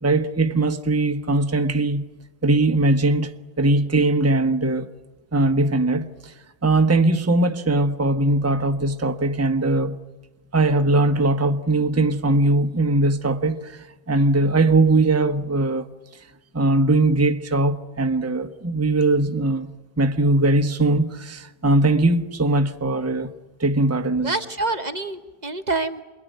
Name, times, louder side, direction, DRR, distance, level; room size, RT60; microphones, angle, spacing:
voice 1, 0.0-2.0 2.4-3.3 3.6-4.9 5.3-6.3 6.6-10.0 10.5-15.9 16.5-19.7 20.0-23.3 23.6-24.3, right 2 dB, 15° right, 1.0 m, -20 dB
voice 2, 24.2-26.0, right 3 dB, 45° right, 1.1 m, -26 dB
28.0 x 22.0 x 9.2 m
omnidirectional pair, 1.1 m